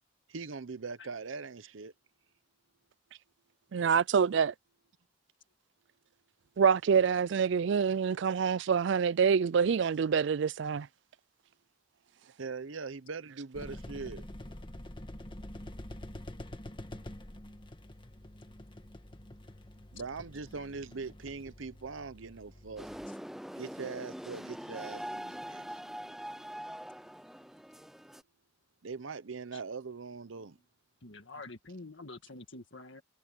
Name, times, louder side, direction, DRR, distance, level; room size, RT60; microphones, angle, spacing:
voice 1, 0.3-1.9 12.4-14.2 19.9-22.9 23.6-25.6 28.8-30.6, right 4 dB, 80° right, 0.8 m, -41 dB
voice 2, 3.7-4.5 6.6-10.9, right 6 dB, 65° right, 0.4 m, -26 dB
sound 1, 13.5-23.1, left 1 dB, 25° left, 1.4 m, -47 dB
sound 2, 22.8-28.2, equal, ahead, 0.5 m, -43 dB
voice 3, 31.0-33.0, left 3 dB, 65° left, 1.9 m, -47 dB
head